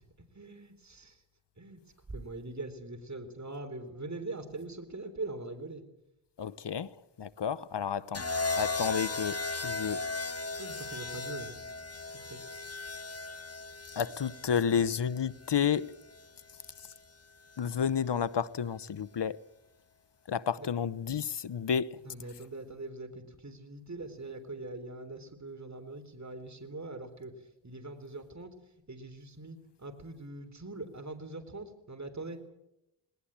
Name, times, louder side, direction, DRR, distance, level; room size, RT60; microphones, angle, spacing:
voice 1, 0.4-1.1 1.6-1.8 2.1-5.8 10.6-11.5 12.3-12.4 20.6-20.7 22.1-27.3 27.6-28.5 28.9-32.4, right 2 dB, 35° right, 3.9 m, -42 dB
voice 2, 6.4-8.3 8.6-10.0 14.0-15.9 17.6-19.4 20.3-22.0, left 7 dB, 65° left, 0.9 m, -31 dB
sound 1, 8.1-16.3 17.5-17.9, left 3 dB, 30° left, 1.7 m, -37 dB
20.0 x 19.0 x 8.8 m
cardioid pair, 45°, 46 cm